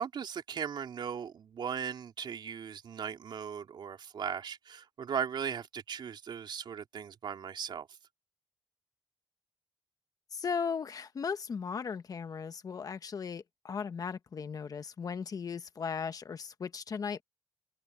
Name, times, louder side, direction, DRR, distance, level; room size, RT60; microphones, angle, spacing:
voice 1, 0.0-7.9, right 7 dB, 70° right, 3.3 m, -38 dB
voice 2, 10.3-17.2, left 6 dB, 50° left, 1.2 m, -37 dB
wide cardioid pair, 135°, 8 cm